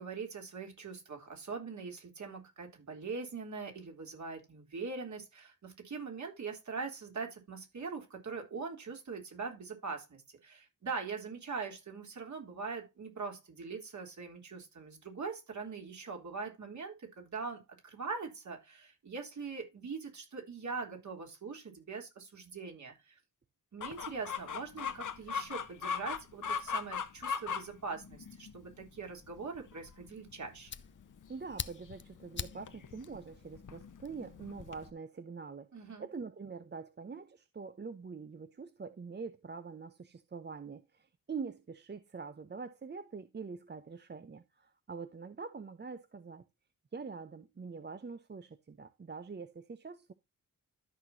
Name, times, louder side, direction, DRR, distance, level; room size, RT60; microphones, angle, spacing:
voice 1, 0.0-23.2 23.7-30.7 35.7-36.0, right 4 dB, 60° right, 3.5 m, -42 dB
Chicken rooster, 23.8-34.9, left 6 dB, 65° left, 1.1 m, -41 dB
Fire, 30.1-34.7, left 6 dB, 35° left, 0.6 m, -46 dB
voice 2, 31.3-46.5 46.9-50.1, right 5 dB, 30° right, 0.7 m, -44 dB
13.0 x 6.0 x 2.7 m
wide cardioid pair, 130°, 33 cm